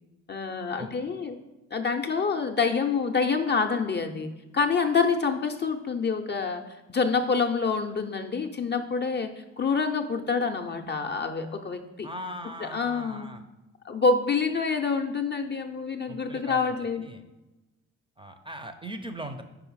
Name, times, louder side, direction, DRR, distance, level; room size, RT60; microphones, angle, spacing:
voice 1, 0.3-1.4 1.7-6.6 6.9-9.3 9.6-12.1 12.6-13.3 13.8-17.1, left 5 dB, 30° left, 4 dB, 0.6 m, -27 dB
voice 2, 12.0-13.4 16.1-17.2 18.2-19.4, equal, 15° right, 8 dB, 0.6 m, -39 dB
4.9 x 4.9 x 4.6 m, 1.0 s
hypercardioid pair, 45°, 36 cm